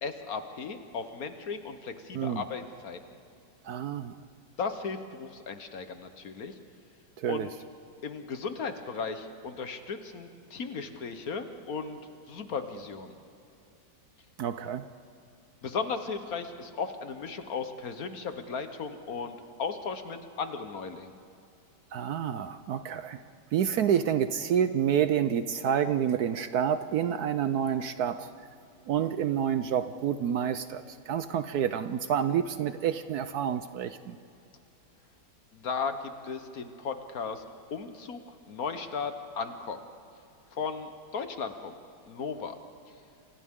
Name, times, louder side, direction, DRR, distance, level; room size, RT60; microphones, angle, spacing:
voice 1, 0.0-3.0 4.6-6.6 7.3-7.5 8.0-12.0 12.3-13.1 15.6-21.1 35.5-37.4 37.7-39.8 40.5-41.8 42.1-42.6, left 5 dB, 55° left, 8 dB, 1.4 m, -36 dB
voice 2, 3.6-4.2 7.2-7.5 14.4-14.9 21.9-23.2 23.5-28.3 28.9-34.2, right 9 dB, 65° right, 11 dB, 1.0 m, -28 dB
30.0 x 26.0 x 3.7 m, 2.7 s
omnidirectional pair, 2.0 m